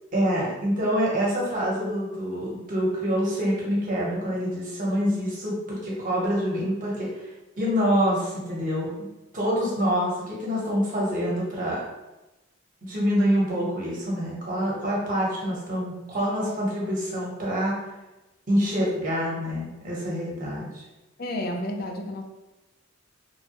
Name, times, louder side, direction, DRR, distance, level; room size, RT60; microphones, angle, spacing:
voice 1, 0.1-7.1 7.6-8.9 9.3-11.8 12.8-17.7 18.5-20.8, equal, 40° right, -5 dB, 1.0 m, -26 dB
voice 2, 21.2-22.2, left 1 dB, 50° left, 3 dB, 0.4 m, -31 dB
3.1 x 2.2 x 2.8 m, 1.0 s
head